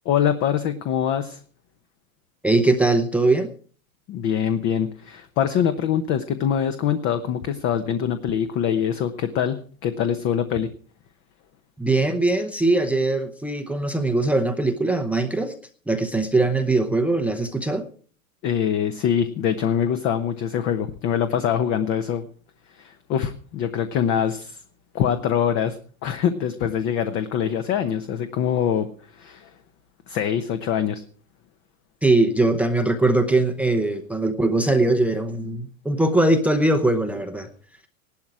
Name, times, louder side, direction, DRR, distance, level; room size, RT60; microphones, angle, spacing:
voice 1, 0.0-1.4 4.1-10.7 18.4-22.3 22.8-24.6 24.9-29.5 30.1-31.0, left 8 dB, 30° left, 10 dB, 0.9 m, -24 dB
voice 2, 2.4-3.5 11.8-15.5 15.9-17.8 32.0-37.5, right 2 dB, 5° right, 7 dB, 0.7 m, -21 dB
16.5 x 12.0 x 4.8 m, 0.43 s
supercardioid pair, 140°, 43 cm